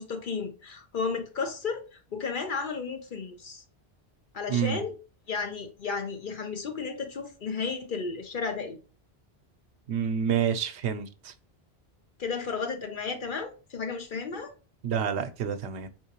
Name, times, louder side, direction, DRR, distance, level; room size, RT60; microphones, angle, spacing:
voice 1, 0.0-3.6 4.3-4.9 5.3-8.8 12.2-14.5, left 5 dB, 55° left, 0.8 m, -33 dB
voice 2, 4.5-4.8 9.9-11.3 14.8-15.9, right 8 dB, 80° right, 0.9 m, -28 dB
4.6 x 3.5 x 2.9 m
omnidirectional pair, 1.1 m